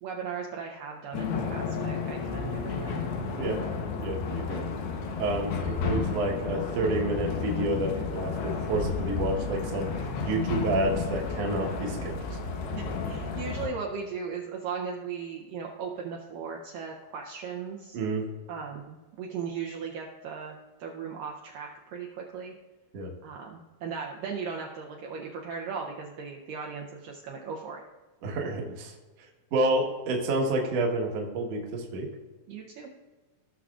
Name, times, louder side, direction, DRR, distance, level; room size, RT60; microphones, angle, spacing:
voice 1, 0.0-3.0 12.7-18.0 18.5-22.5 23.2-27.8 32.5-32.9, right 6 dB, 75° right, -1 dB, 2.2 m, -37 dB
sound 1, 1.1-13.7, left 5 dB, 85° left, 3.1 m, -32 dB
voice 2, 4.0-4.6 5.2-12.4 17.9-18.2 22.9-23.1 28.2-28.9 29.5-32.1, right 2 dB, 55° right, 0 dB, 2.0 m, -29 dB
18.0 x 6.3 x 2.4 m, 1.3 s
omnidirectional pair, 4.4 m